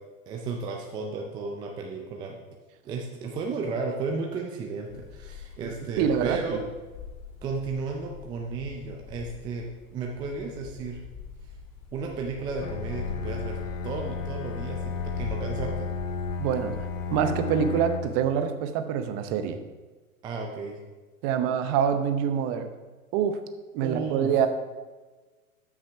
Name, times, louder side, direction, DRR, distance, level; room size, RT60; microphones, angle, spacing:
voice 1, 0.3-2.4 2.8-6.6 7.4-9.7 9.9-11.0 11.9-13.6 13.8-15.9 20.2-20.8 23.8-24.5, right 4 dB, 10° right, 1 dB, 0.4 m, -33 dB
sound 1, 4.9-17.4, left 7 dB, 40° left, 2.1 m, -41 dB
voice 2, 6.0-6.6 16.4-19.6 21.2-22.7 23.1-23.4 23.7-24.5, right 8 dB, 35° right, 9 dB, 0.8 m, -26 dB
Bowed string instrument, 12.6-18.3, left 4 dB, 65° left, 1.1 m, -33 dB
12.5 x 6.1 x 3.5 m, 1.3 s
hypercardioid pair, 120°, 43 cm